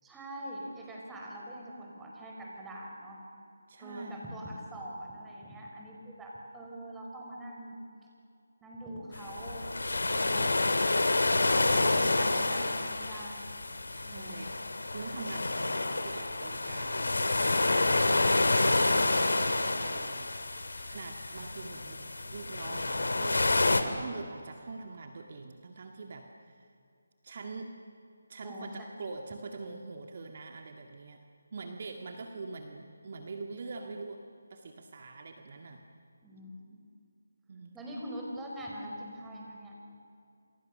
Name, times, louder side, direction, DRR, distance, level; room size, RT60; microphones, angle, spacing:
voice 1, 0.0-3.2 3.8-7.8 8.6-9.7 10.1-10.9 11.4-13.5 14.0-14.6 20.8-20.9 28.4-28.9 36.2-36.8 37.7-39.8, right 1 dB, 5° right, -3 dB, 5.1 m, -43 dB
voice 2, 3.7-4.2 13.8-14.6 14.9-23.4 23.8-26.7 27.2-27.8 28.3-31.2 31.5-34.2 34.5-35.8 37.5-37.8, right 3 dB, 45° right, 4 dB, 2.0 m, -44 dB
sound 1, 9.1-23.8, left 2 dB, 75° left, 2.6 m, -28 dB
28.0 x 28.0 x 6.7 m, 2.5 s
figure-of-eight pair, 160°, 0 cm